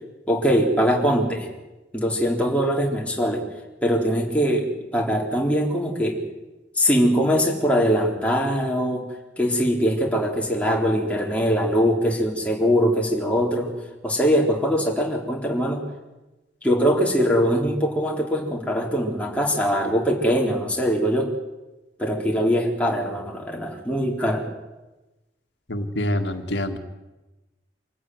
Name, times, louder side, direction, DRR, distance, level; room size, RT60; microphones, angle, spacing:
voice 1, 0.3-1.5 1.9-3.4 3.8-4.7 4.9-6.2 6.8-9.0 9.4-13.7 14.0-15.8 16.6-21.3 22.0-24.5, equal, 10° left, -1 dB, 3.9 m, -22 dB
voice 2, 25.7-26.8, left 1 dB, 90° left, 6 dB, 1.9 m, -26 dB
25.5 x 14.5 x 9.5 m, 1.1 s
head